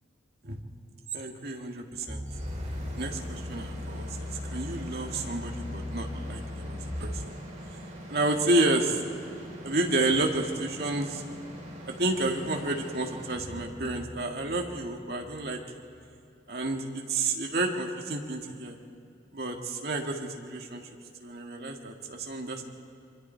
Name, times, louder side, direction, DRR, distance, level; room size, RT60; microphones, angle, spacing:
voice 1, 1.1-2.2 3.0-7.3 8.1-9.0 9.6-11.2 11.9-15.6 16.5-18.8 19.3-20.8 21.2-22.6, right 2 dB, 55° right, 2 dB, 1.9 m, -30 dB
sound 1, 2.1-7.2 7.8-7.9, left 2 dB, 10° left, 4.2 m, -38 dB
sound 2, 2.3-16.2, equal, 35° right, 4.4 m, -43 dB
27.0 x 23.0 x 4.5 m, 2.5 s
head